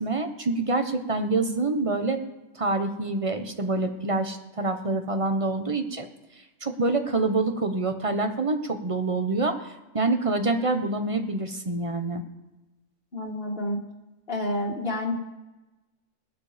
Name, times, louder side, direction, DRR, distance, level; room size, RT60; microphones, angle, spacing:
voice 1, 0.0-2.2 2.5-6.1 6.6-12.2, right 2 dB, 25° right, 7 dB, 1.1 m, -26 dB
voice 2, 13.1-13.8 14.3-15.1, left 1 dB, 45° left, 0 dB, 2.0 m, -29 dB
19.0 x 12.0 x 5.1 m, 1.1 s
omnidirectional pair, 1.3 m